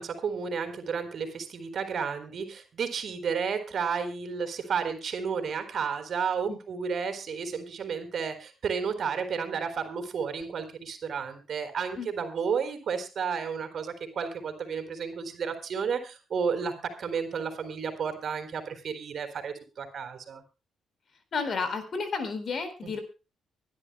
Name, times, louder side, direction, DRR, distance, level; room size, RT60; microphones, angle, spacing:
voice 1, 0.0-20.4 22.8-23.0, right 6 dB, 55° right, 8 dB, 3.9 m, -32 dB
voice 2, 21.3-23.0, left 4 dB, 50° left, 10 dB, 4.1 m, -31 dB
24.5 x 12.0 x 2.2 m, 0.31 s
cardioid pair, 90°, 0 cm